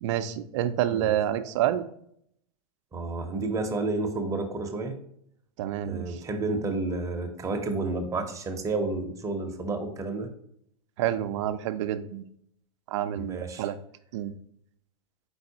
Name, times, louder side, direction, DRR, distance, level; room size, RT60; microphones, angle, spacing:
voice 1, 0.0-1.8 5.6-6.2 11.0-12.2 12.9-13.8 14.1-14.3, right 11 dB, 55° right, 11 dB, 0.4 m, -28 dB
voice 2, 2.9-4.9 5.9-10.3 13.2-13.7, right 3 dB, 15° right, 4 dB, 0.7 m, -30 dB
4.6 x 3.9 x 2.7 m, 0.70 s
hypercardioid pair, 105°, 19 cm